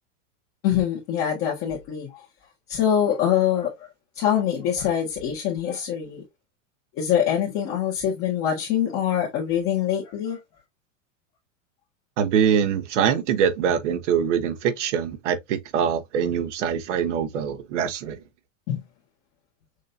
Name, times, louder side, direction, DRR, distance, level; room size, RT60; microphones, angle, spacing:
voice 1, 0.6-2.2 2.7-3.9 4.1-6.2 7.0-10.4 18.7-18.8, left 9 dB, 35° left, 1.6 m, -24 dB
voice 2, 12.2-18.2, right 8 dB, 70° right, 1.3 m, -23 dB
6.4 x 2.8 x 2.6 m
supercardioid pair, 165°, 38 cm